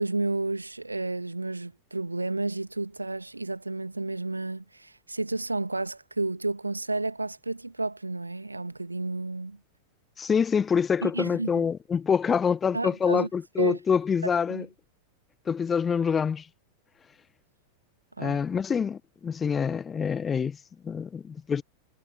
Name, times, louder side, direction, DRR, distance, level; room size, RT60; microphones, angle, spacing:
voice 1, 0.0-9.6 11.0-11.7 12.7-13.3 13.6-13.8 14.2-14.7 18.2-18.4, right 2 dB, 85° right, 2.2 m, -31 dB
voice 2, 10.2-14.7 15.5-16.5 18.2-20.6 20.8-21.6, left 6 dB, 20° left, 1.2 m, -26 dB
figure-of-eight pair, 90°, 0 cm